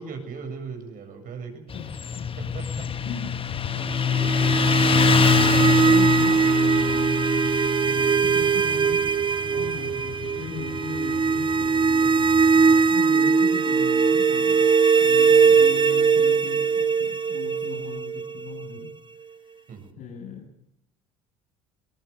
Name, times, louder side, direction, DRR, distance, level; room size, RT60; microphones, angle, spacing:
voice 1, 0.0-1.7 2.4-2.9 15.4-15.7 19.7-20.0, right 5 dB, 50° right, 6 dB, 7.3 m, -38 dB
voice 2, 1.7-2.3 3.0-3.4 3.7-7.2 7.8-9.1 9.4-14.6 15.0-18.9 19.2-19.7 20.0-20.5, left 6 dB, 60° left, -3 dB, 7.1 m, -39 dB
Motorcycle, 1.7-12.8, left 6 dB, 30° left, 1.2 m, -25 dB
sound 1, 4.0-18.9, right 5 dB, 25° right, 1.2 m, -21 dB
22.5 x 20.0 x 8.4 m, 0.78 s
hypercardioid pair, 75°, 18 cm